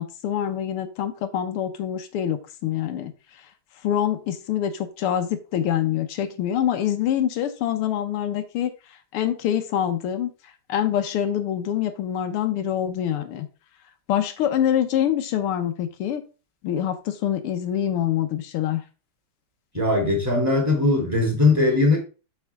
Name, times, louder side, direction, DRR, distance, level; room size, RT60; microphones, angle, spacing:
voice 1, 0.0-3.1 3.8-8.7 9.1-10.3 10.7-13.5 14.1-16.2 16.6-18.8, left 10 dB, 85° left, 1.8 m, -25 dB
voice 2, 19.7-22.0, left 2 dB, 5° right, 3.1 m, -20 dB
6.9 x 6.7 x 3.6 m
omnidirectional pair, 2.4 m